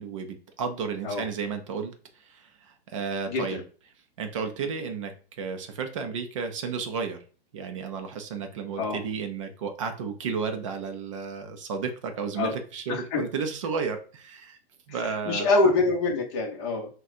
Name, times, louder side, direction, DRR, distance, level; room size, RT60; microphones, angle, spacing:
voice 1, 0.0-3.6 4.2-7.2 7.5-14.6 14.9-15.5, right 5 dB, 30° right, 6 dB, 0.5 m, -33 dB
voice 2, 3.3-3.6 8.8-9.0 12.4-12.5 12.9-13.2 14.9-16.9, left 3 dB, 25° left, -1 dB, 1.1 m, -25 dB
6.1 x 2.3 x 2.7 m, 0.39 s
hypercardioid pair, 160°, 32 cm